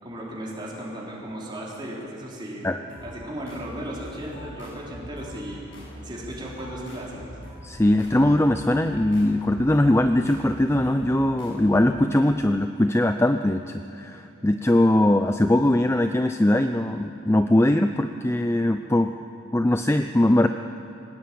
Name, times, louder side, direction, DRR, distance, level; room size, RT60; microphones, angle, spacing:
voice 1, 0.0-2.7 3.0-5.6 6.0-7.2, right 1 dB, 25° right, -5 dB, 4.2 m, -35 dB
sound 1, 2.9-12.4, equal, 70° left, 7.3 m, -43 dB
voice 2, 7.6-19.1 19.5-20.5, left 1 dB, 15° left, 7 dB, 0.5 m, -21 dB
21.0 x 19.0 x 8.6 m, 2.9 s
head